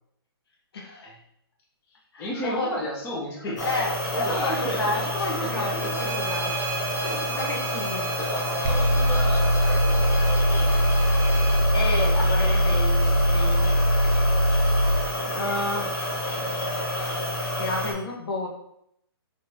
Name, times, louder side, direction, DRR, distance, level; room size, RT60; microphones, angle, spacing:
voice 1, 0.7-1.1 2.1-2.7 3.4-6.5 7.4-8.1 11.7-13.7 15.3-16.0 17.6-18.5, left 2 dB, 75° left, 0 dB, 1.1 m, -31 dB
voice 2, 1.9-3.8 4.1-5.9 6.5-7.4 8.2-10.9 12.2-12.7, left 1 dB, 15° left, -4 dB, 0.7 m, -34 dB
sound 1, 3.6-17.9, left 1 dB, 45° left, 1.1 m, -29 dB
Bowed string instrument, 5.7-11.6, right 5 dB, 40° right, 0.8 m, -36 dB
sound 2, 8.6-15.0, equal, 65° right, 0.5 m, -21 dB
3.9 x 3.1 x 2.7 m, 0.74 s
hypercardioid pair, 155°, 13 cm